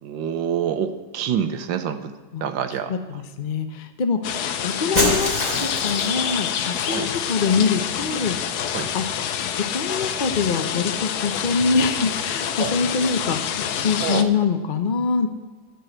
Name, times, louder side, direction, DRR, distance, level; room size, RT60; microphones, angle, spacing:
voice 1, 0.0-2.2 2.4-2.9 4.9-5.0 6.8-7.1 8.7-8.9 12.6-12.7 14.0-14.3, right 8 dB, 85° right, 9 dB, 1.5 m, -26 dB
voice 2, 2.9-8.4 8.9-9.1 9.5-15.3, left 5 dB, 45° left, 7 dB, 0.6 m, -24 dB
sound 1, 4.2-14.2, left 9 dB, 65° left, 1.1 m, -27 dB
Shatter, 4.9-6.3, left 1 dB, 20° left, 4.1 m, -24 dB
14.0 x 5.5 x 7.9 m, 1.4 s
omnidirectional pair, 2.0 m